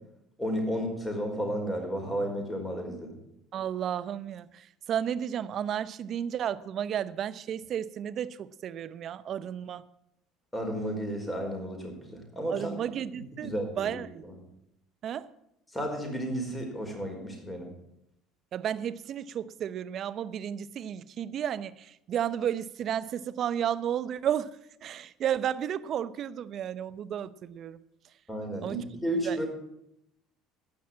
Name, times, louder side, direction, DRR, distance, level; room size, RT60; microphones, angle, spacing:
voice 1, 0.4-3.2 10.5-12.7 13.4-14.0 14.2-14.4 15.7-17.7 28.3-29.5, equal, 10° left, 4.9 m, -32 dB
voice 2, 3.5-9.8 12.5-13.5 13.8-14.2 15.0-15.3 18.5-24.5 24.8-27.8 28.6-28.8 29.2-29.4, right 9 dB, 50° right, 0.7 m, -32 dB
15.5 x 5.9 x 8.6 m
hypercardioid pair, 80°, 0 cm